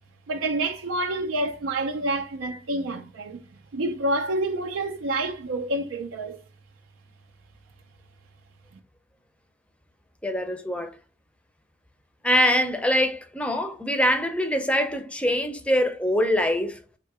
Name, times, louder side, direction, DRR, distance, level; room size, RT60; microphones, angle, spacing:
voice 1, 0.3-3.4 3.7-6.4, right 2 dB, 80° right, 0.5 m, -28 dB
voice 2, 10.2-10.9 12.2-16.8, equal, 5° left, 0.5 m, -23 dB
3.6 x 2.8 x 4.7 m
head